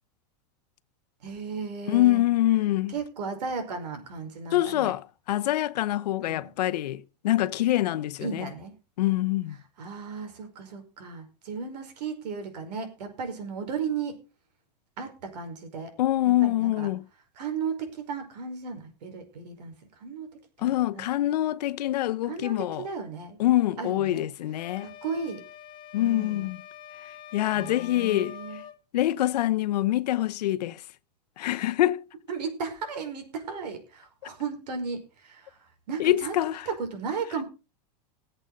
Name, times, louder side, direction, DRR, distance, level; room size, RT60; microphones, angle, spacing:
voice 1, 1.2-2.2 2.9-4.9 6.2-6.5 8.2-8.7 9.8-14.2 15.0-15.9 16.4-16.9 17.4-20.3 20.6-21.0 22.3-23.4 23.8-24.2 24.8-25.4 26.0-26.5 27.5-28.6 32.3-36.4 36.6-37.4, right 5 dB, 80° right, 5.1 m, -35 dB
voice 2, 1.9-2.9 4.5-8.5 9.0-9.6 16.0-17.0 20.6-22.9 23.4-24.9 25.9-26.6 27.3-28.4 28.9-30.8 31.4-32.0 36.0-36.7, left 14 dB, 75° left, 0.9 m, -25 dB
sound 1, 24.6-28.8, left 10 dB, 20° left, 1.0 m, -45 dB
20.5 x 8.1 x 4.0 m
supercardioid pair, 165°, 21 cm